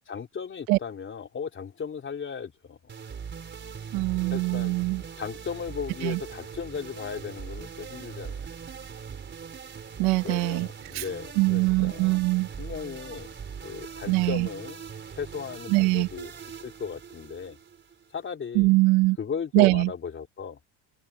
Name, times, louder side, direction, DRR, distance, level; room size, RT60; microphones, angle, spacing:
voice 1, 0.0-2.9 4.3-4.7 5.2-8.3 10.2-12.1 12.6-13.3 13.6-14.8 15.1-16.3 16.6-17.6 18.1-18.7 19.2-20.6, left 6 dB, 25° left, 3.9 m, -36 dB
sound 1, 2.9-18.3, right 6 dB, 25° right, 4.2 m, -41 dB
voice 2, 3.9-5.0 6.0-6.2 10.0-10.7 10.9-11.0 11.4-12.5 14.1-14.5 15.7-16.1 18.6-19.2 19.5-19.9, right 22 dB, 85° right, 2.1 m, -22 dB
open air
cardioid pair, 160°, 47 cm